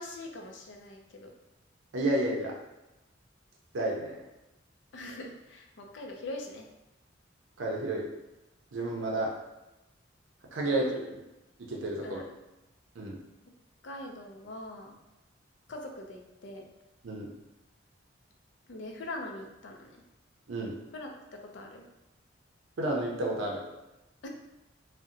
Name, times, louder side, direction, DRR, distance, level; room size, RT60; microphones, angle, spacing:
voice 1, 0.0-1.3 4.9-6.7 10.7-11.0 12.0-12.3 13.8-15.0 15.7-16.6 18.7-20.0 20.9-21.8 24.2-24.3, left 2 dB, 65° left, 2 dB, 0.4 m, -42 dB
voice 2, 1.9-2.5 3.7-4.2 7.6-8.1 8.7-9.3 10.5-11.0 11.6-12.2 13.0-13.2 17.0-17.3 20.5-20.7 22.8-23.6, right 1 dB, 80° right, -1 dB, 0.5 m, -31 dB
2.6 x 2.1 x 3.7 m, 0.95 s
head